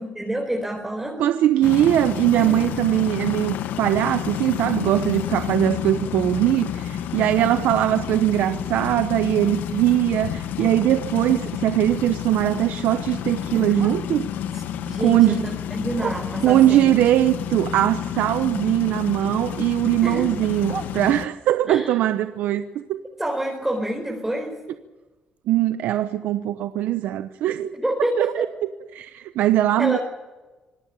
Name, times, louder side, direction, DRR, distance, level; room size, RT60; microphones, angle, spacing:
voice 1, 0.0-1.3 2.4-2.6 14.5-16.9 20.0-20.3 21.7-21.9 23.2-24.6 27.7-28.5 29.8-30.0, right 1 dB, 10° right, 0 dB, 4.7 m, -28 dB
voice 2, 1.2-14.3 15.0-15.4 16.4-23.0 25.5-27.7 28.2-28.5 28.9-30.0, right 13 dB, 85° right, 10 dB, 0.9 m, -21 dB
sound 1, 1.6-21.3, left 10 dB, 80° left, 1.3 m, -30 dB
Bark, 11.2-14.4 14.8-16.7 17.2-19.0 19.3-21.6 22.1-26.0 26.3-26.4 26.7-27.1 27.5-27.6 28.0-28.1 28.6-28.7, right 6 dB, 55° right, 2.2 m, -42 dB
26.0 x 18.5 x 7.1 m, 1.2 s
cardioid pair, 80°, 3 cm